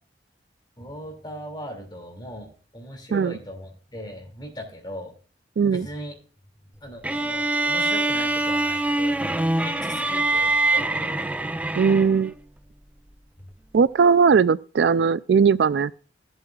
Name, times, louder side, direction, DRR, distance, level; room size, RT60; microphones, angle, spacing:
voice 1, 0.8-5.1 5.6-6.1 6.8-11.8, equal, 25° left, 2.5 m, -39 dB
voice 2, 5.6-5.9 11.8-12.3 13.7-15.9, right 6 dB, 75° right, 0.4 m, -19 dB
sound 1, 7.0-12.3, right 2 dB, 10° right, 0.4 m, -24 dB
16.0 x 7.8 x 2.4 m
head